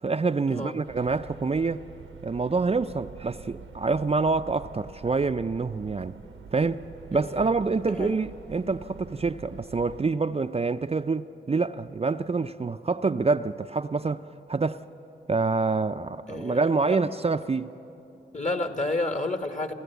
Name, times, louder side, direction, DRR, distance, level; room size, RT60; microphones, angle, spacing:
voice 1, 0.0-1.8 2.2-6.2 6.5-6.8 7.1-14.8 15.3-17.8, right 4 dB, 30° right, 0.5 m, -26 dB
sound 1, 0.8-10.0, right 6 dB, 85° right, 0.9 m, -46 dB
voice 2, 7.1-7.6 8.0-8.2 16.3-17.0 18.3-19.7, left 2 dB, 35° left, 1.7 m, -30 dB
27.5 x 13.5 x 8.2 m
cardioid pair, 45°, 20 cm